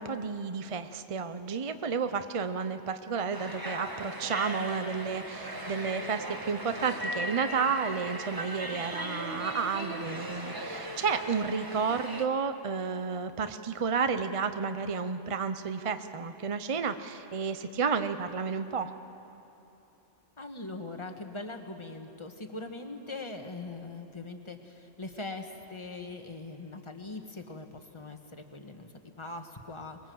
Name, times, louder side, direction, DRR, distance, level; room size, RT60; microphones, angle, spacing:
voice 1, 0.0-18.9, right 5 dB, 35° right, 10 dB, 0.6 m, -31 dB
sound 1, 3.3-12.3, right 1 dB, 20° right, 1.4 m, -38 dB
voice 2, 20.4-28.9 29.2-30.0, left 2 dB, 25° left, 5 dB, 1.5 m, -41 dB
24.5 x 22.0 x 7.9 m, 2.9 s
omnidirectional pair, 1.2 m